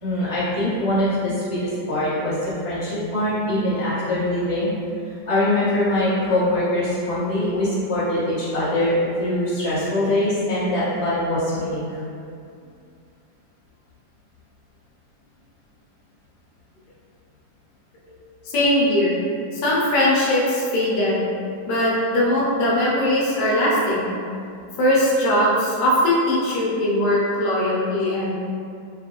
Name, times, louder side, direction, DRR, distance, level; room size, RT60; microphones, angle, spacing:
voice 1, 0.0-4.7 5.3-12.0, left 1 dB, 20° left, -14 dB, 1.1 m, -23 dB
voice 2, 18.5-19.2 19.5-21.2 21.7-24.1 24.8-28.3, left 1 dB, 80° left, -6 dB, 1.3 m, -20 dB
3.3 x 2.3 x 2.9 m, 2.4 s
omnidirectional pair, 1.9 m